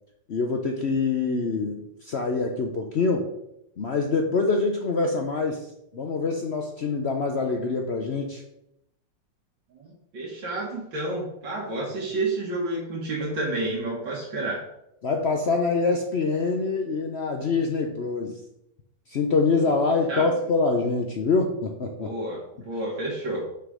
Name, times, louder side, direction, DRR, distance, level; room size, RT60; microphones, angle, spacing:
voice 1, 0.3-3.3 3.8-5.7 5.9-8.4 15.0-18.4 19.1-22.1, left 4 dB, 60° left, 3 dB, 0.6 m, -25 dB
voice 2, 9.7-14.6 20.1-20.3 22.0-23.4, right 2 dB, 85° right, -3 dB, 2.1 m, -30 dB
5.8 x 5.8 x 4.9 m, 0.81 s
omnidirectional pair, 2.0 m